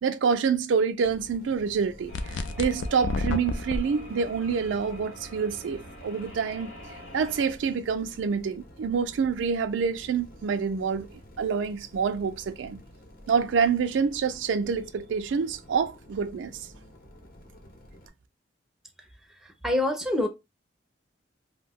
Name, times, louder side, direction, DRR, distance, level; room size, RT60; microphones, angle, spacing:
voice 1, 0.0-6.7 7.1-11.1 11.4-12.8 13.3-16.6, right 6 dB, 85° right, 0.4 m, -27 dB
sound 1, 1.0-18.1, equal, 55° left, 0.8 m, -50 dB
sound 2, 2.1-7.5, equal, 90° left, 0.9 m, -45 dB
sound 3, 2.1-3.8, left 3 dB, 75° left, 0.4 m, -29 dB
voice 2, 19.6-20.3, left 1 dB, 5° right, 0.5 m, -25 dB
2.6 x 2.2 x 3.4 m
head